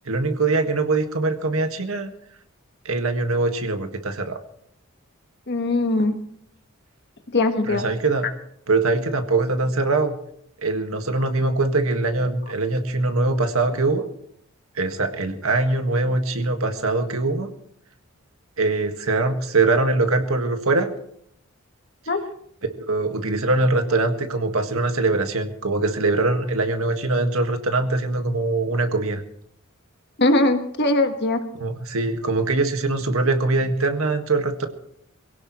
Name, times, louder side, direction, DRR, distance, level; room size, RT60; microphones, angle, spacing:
voice 1, 0.1-2.1 2.8-4.4 7.7-8.3 8.7-10.1 10.6-14.1 14.8-17.5 18.6-20.9 22.9-29.2 31.5-34.7, right 3 dB, 80° right, 6 dB, 1.7 m, -22 dB
voice 2, 5.5-6.1 7.3-7.8 22.1-22.2 30.2-31.4, left 2 dB, 50° left, 6 dB, 1.5 m, -20 dB
23.5 x 17.0 x 3.1 m, 0.69 s
head